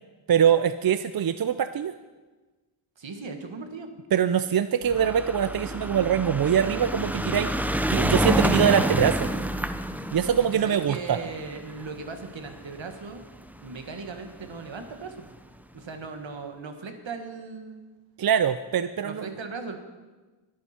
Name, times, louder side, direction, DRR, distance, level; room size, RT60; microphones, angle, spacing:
voice 1, 0.3-1.9 4.1-7.5 7.9-9.3 10.1-11.2 18.2-19.3, right 8 dB, 50° right, 11 dB, 0.5 m, -23 dB
voice 2, 3.0-3.9 10.5-13.2 13.6-15.3 15.7-17.8 19.0-19.8, right 4 dB, 70° right, 6 dB, 1.6 m, -38 dB
sound 1, 4.9-13.3 14.2-14.3 14.5-14.6 14.8-14.9, right 1 dB, 5° right, 0.6 m, -28 dB
21.0 x 9.4 x 4.3 m, 1.3 s
wide cardioid pair, 110°, 47 cm